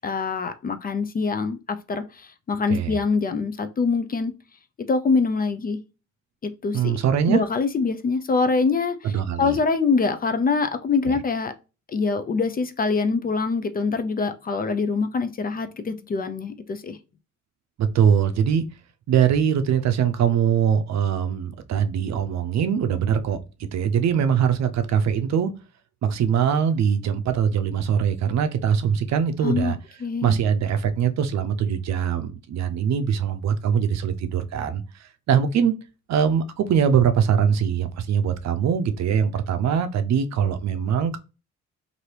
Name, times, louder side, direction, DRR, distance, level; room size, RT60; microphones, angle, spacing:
voice 1, 0.0-4.3 4.9-5.8 6.4-7.0 7.3-11.5 11.9-17.0 29.4-29.7 30.0-30.4, left 4 dB, 30° left, 0.4 m, -24 dB
voice 2, 6.7-7.4 9.0-9.6 11.1-11.2 17.8-18.6 19.1-23.4 23.7-25.5 26.0-29.8 30.2-35.7 36.1-41.2, right 8 dB, 65° right, 0.5 m, -22 dB
2.8 x 2.6 x 3.2 m
cardioid pair, 90°, 30 cm